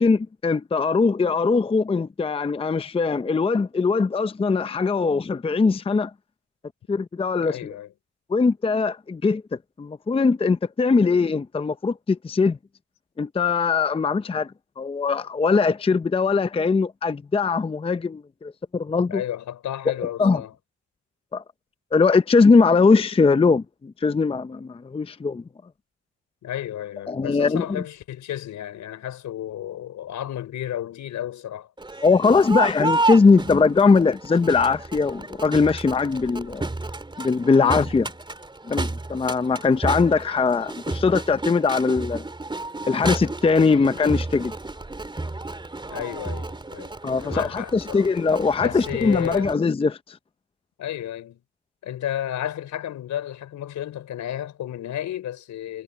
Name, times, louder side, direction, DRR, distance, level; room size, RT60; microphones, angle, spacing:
voice 1, 0.0-6.1 6.9-7.6 8.3-12.6 13.2-19.2 20.2-20.4 21.3-21.4 21.9-25.4 27.1-27.8 32.0-36.7 37.2-38.1 38.7-42.2 42.9-44.5 47.0-50.2, left 4 dB, 20° left, 0.6 m, -21 dB
voice 2, 7.3-7.9 19.1-20.5 26.4-31.7 45.9-46.4 46.7-48.1 48.6-49.5 50.8-51.4 51.8-55.8, left 11 dB, 75° left, 4.7 m, -32 dB
Crowd, 31.8-49.5, right 2 dB, 15° right, 3.7 m, -31 dB
cardioid pair, 90°, 30 cm